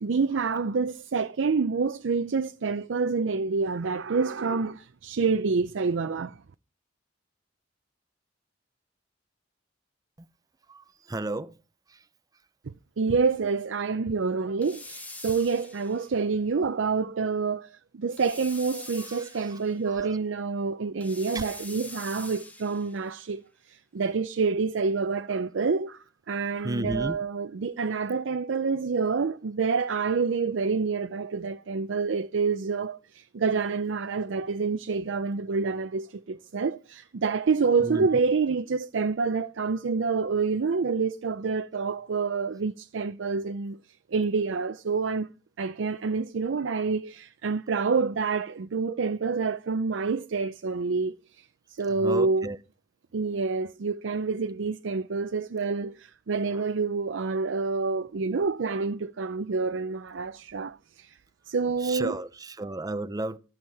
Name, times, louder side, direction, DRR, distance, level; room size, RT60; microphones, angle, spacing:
voice 1, 0.0-6.4 12.7-43.8 44.1-45.3 45.6-52.5 53.1-61.2 61.5-62.1, right 4 dB, 85° right, 0.5 m, -27 dB
voice 2, 10.7-11.6 11.9-12.1 19.0-20.2 21.3-21.5 26.6-27.2 37.8-38.2 51.9-52.6 56.5-56.7 61.8-63.4, right 2 dB, 20° right, 0.6 m, -34 dB
sound 1, 14.6-16.2 18.2-19.8 21.0-23.1, left 2 dB, 10° left, 1.0 m, -44 dB
14.0 x 7.3 x 4.7 m
head